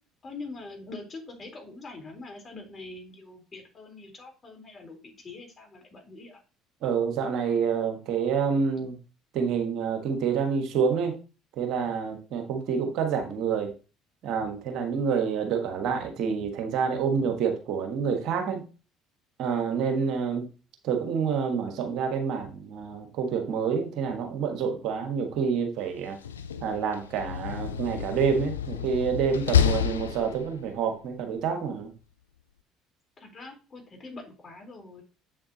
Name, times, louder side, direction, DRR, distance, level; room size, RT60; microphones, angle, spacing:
voice 1, 0.2-6.4 33.2-35.0, left 3 dB, 35° left, 2 dB, 3.7 m, -43 dB
voice 2, 6.8-9.0 9.3-11.2 11.6-13.7 14.2-18.6 19.4-20.5 20.8-26.2 26.6-31.9, right 6 dB, 60° right, 5 dB, 1.4 m, -28 dB
Slam, 26.1-30.8, left 8 dB, 85° left, 0.6 m, -29 dB
7.8 x 7.5 x 2.8 m, 0.34 s
figure-of-eight pair, 60°, 0 cm